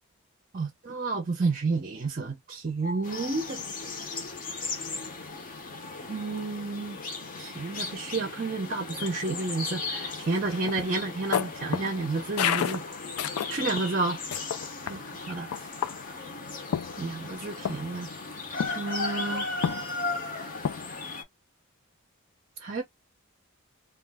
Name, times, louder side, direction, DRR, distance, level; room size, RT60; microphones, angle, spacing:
voice 1, 0.5-3.6 6.1-7.0 7.4-12.8 13.5-14.2 14.9-15.0 15.3-15.5 17.0-18.1 18.8-19.5 22.6-22.8, right 3 dB, 40° right, 0.5 m, -30 dB
sound 1, 3.0-21.2, left 3 dB, 40° left, 0.7 m, -37 dB
sound 2, 10.5-13.9 14.3-15.0 15.5-16.2 16.7-17.4 17.7-18.0 18.6-19.0 19.6-20.2 20.6-20.9, left 8 dB, 80° left, 0.3 m, -31 dB
2.3 x 2.1 x 3.4 m
head